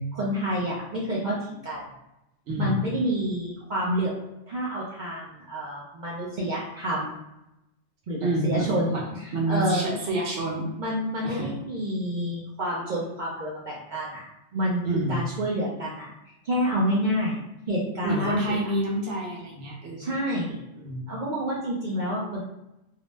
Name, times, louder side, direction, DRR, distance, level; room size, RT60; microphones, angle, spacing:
voice 1, 0.1-1.8 2.6-4.1 4.5-7.2 8.1-10.0 10.8-14.2 14.5-14.8 15.1-16.1 16.4-17.4 17.7-18.6 20.0-20.6 21.1-22.4, equal, 55° right, -5 dB, 0.6 m, -28 dB
voice 2, 2.5-2.8 8.2-9.0 9.3-10.7 11.2-11.5 14.8-15.3 18.0-20.1 20.8-21.0, right 1 dB, 90° right, -2 dB, 1.1 m, -28 dB
2.7 x 2.0 x 3.2 m, 0.91 s
omnidirectional pair, 1.2 m